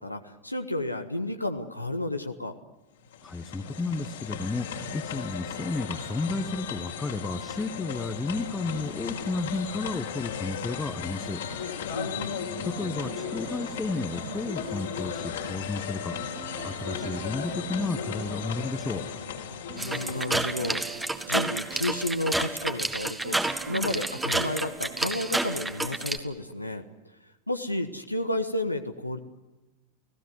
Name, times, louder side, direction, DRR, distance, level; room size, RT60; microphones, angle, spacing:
voice 1, 0.0-2.5 11.9-12.4 19.8-26.8 27.5-29.2, left 1 dB, 85° left, 6 dB, 1.5 m, -32 dB
sound 1, 3.0-21.0, left 6 dB, 60° left, 4.1 m, -36 dB
voice 2, 3.2-11.4 12.6-19.1, left 3 dB, 10° left, 5 dB, 1.3 m, -32 dB
sound 2, 12.6-26.8, right 10 dB, 45° right, 2.3 m, -46 dB
sound 3, 19.8-26.2, right 2 dB, 5° right, 1.7 m, -30 dB
30.0 x 18.0 x 9.5 m, 1.1 s
figure-of-eight pair, 90°, 0 cm